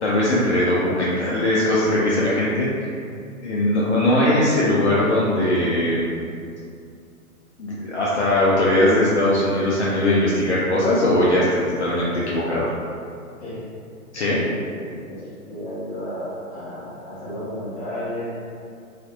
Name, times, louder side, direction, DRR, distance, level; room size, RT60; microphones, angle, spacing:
voice 1, 0.0-2.9 3.4-6.1 7.6-12.7 14.1-14.4, left 1 dB, 55° left, -7 dB, 0.5 m, -20 dB
voice 2, 14.4-18.3, equal, 15° left, -12 dB, 0.8 m, -33 dB
2.5 x 2.5 x 2.2 m, 2.3 s
figure-of-eight pair, 120°, 44 cm